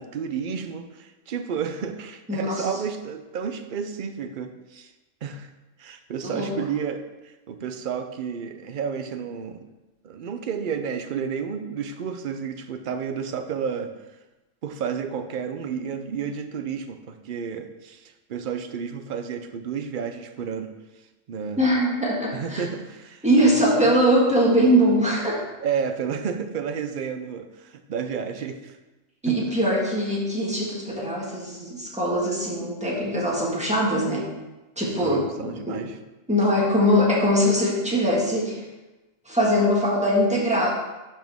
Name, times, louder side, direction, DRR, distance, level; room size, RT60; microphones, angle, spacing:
voice 1, 0.0-4.9 5.2-5.5 5.8-9.6 10.0-13.9 14.6-20.7 21.3-21.8 22.3-23.9 25.6-28.8 29.3-29.5 35.0-36.0, right 7 dB, 55° right, 8 dB, 0.6 m, -31 dB
voice 2, 2.3-2.6 6.2-6.5 21.6-22.7 23.2-25.5 29.2-34.3 34.8-35.8 36.3-38.6 39.2-40.7, equal, 5° right, -4 dB, 1.6 m, -22 dB
12.0 x 4.4 x 3.5 m, 1.1 s
omnidirectional pair, 1.4 m